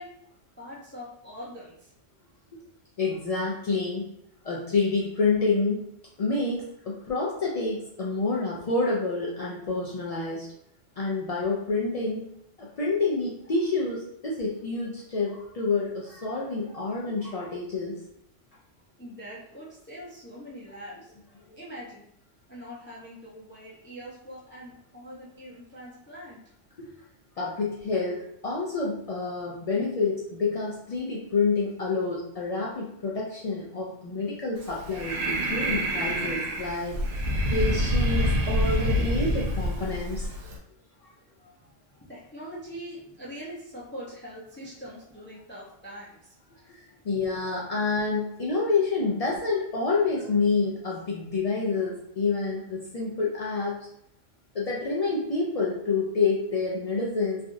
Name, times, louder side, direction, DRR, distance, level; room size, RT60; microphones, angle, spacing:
voice 1, 0.0-2.1 19.0-21.1 21.5-22.0 22.5-26.4 26.9-27.0 41.2-47.0, equal, 15° left, -6 dB, 0.5 m, -43 dB
voice 2, 3.0-4.1 4.4-5.8 6.2-10.5 11.0-12.3 12.6-18.0 26.8-26.9 27.4-37.0 37.5-40.3 46.7-53.8 54.5-57.4, left 3 dB, 70° left, -4 dB, 0.3 m, -28 dB
Breathing, 34.6-40.6, equal, 80° right, 0.9 m, -27 dB
3.3 x 2.4 x 2.6 m, 0.75 s
omnidirectional pair, 1.2 m